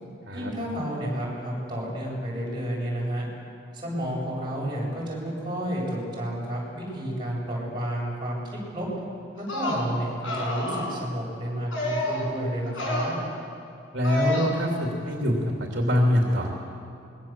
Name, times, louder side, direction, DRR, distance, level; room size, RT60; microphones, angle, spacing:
voice 1, 0.3-3.3 3.7-8.4 8.7-8.9 9.3-13.2, equal, 25° right, -5 dB, 7.5 m, -31 dB
sound 1, 9.4-9.8 10.2-11.0 11.7-12.2 12.7-13.1 14.0-14.5, left 2 dB, 80° left, 6.2 m, -29 dB
voice 2, 13.9-16.5, equal, 55° right, 0 dB, 2.8 m, -24 dB
25.5 x 21.0 x 7.5 m, 2.5 s
head